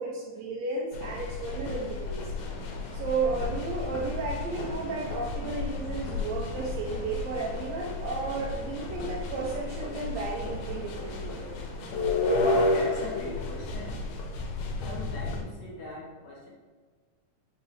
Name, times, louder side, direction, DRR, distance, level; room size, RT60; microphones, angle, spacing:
voice 1, 0.0-2.2 2.9-11.5, right 3 dB, 80° right, -2 dB, 1.6 m, -33 dB
sound 1, 0.9-15.4, left 2 dB, 80° left, 2.1 m, -32 dB
sound 2, 2.4-12.5, right 1 dB, 60° right, 1.3 m, -48 dB
voice 2, 12.3-14.0 14.8-16.5, left 1 dB, 65° left, -4 dB, 1.9 m, -37 dB
5.1 x 2.7 x 3.2 m, 1.5 s
omnidirectional pair, 3.6 m